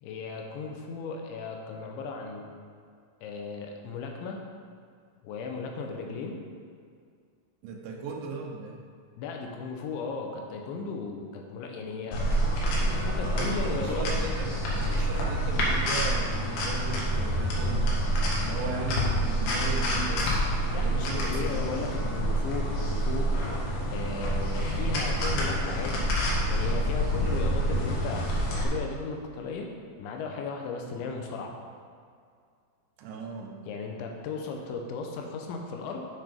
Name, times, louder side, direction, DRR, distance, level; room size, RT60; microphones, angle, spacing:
voice 1, 0.0-2.5 3.2-4.4 5.2-6.4 9.2-12.2 12.8-14.1 20.7-23.3 23.9-26.1 26.5-28.3 28.6-29.7 30.0-31.5 33.6-36.1, left 4 dB, 80° left, 2 dB, 3.2 m, -36 dB
voice 2, 7.6-8.8 13.2-17.9 18.4-20.5 20.8-21.6 33.0-33.6, right 4 dB, 75° right, 0 dB, 3.3 m, -37 dB
sound 1, 12.1-28.6, equal, 60° left, 2.9 m, -27 dB
9.6 x 5.9 x 5.2 m, 2.2 s
omnidirectional pair, 5.4 m